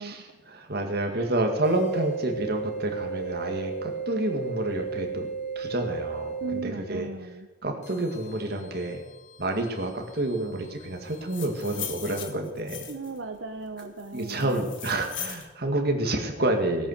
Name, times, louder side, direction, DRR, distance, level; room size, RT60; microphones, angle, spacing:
voice 1, 0.0-5.3 5.6-7.1 7.6-9.0 9.4-12.9 14.1-16.9, right 1 dB, 55° right, 3 dB, 2.1 m, -29 dB
sound 1, 1.6-6.7 7.8-12.2, right 5 dB, 40° left, 1.3 m, -36 dB
voice 2, 6.4-7.5 12.9-14.6, right 3 dB, 80° right, 5 dB, 0.9 m, -37 dB
sound 2, 11.1-13.2 13.8-15.5, left 9 dB, 80° left, 1.5 m, -39 dB
17.5 x 8.7 x 6.7 m, 1.1 s
head